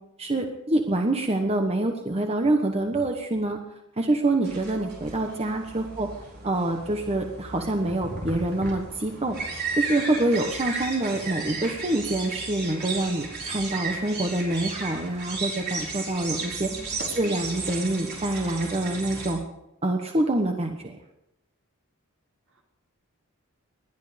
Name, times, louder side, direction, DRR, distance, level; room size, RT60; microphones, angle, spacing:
voice 1, 0.2-3.6 4.0-6.1 6.4-9.4 9.8-16.7 17.2-19.4 19.8-20.9, right 2 dB, 30° right, 4 dB, 1.2 m, -26 dB
sound 1, 4.4-19.3, right 3 dB, 50° right, 4.6 m, -34 dB
voice 2, 5.3-5.6 16.7-17.0 22.5-22.6, equal, 65° right, 0 dB, 3.5 m, -46 dB
20.0 x 11.5 x 5.1 m, 0.86 s
head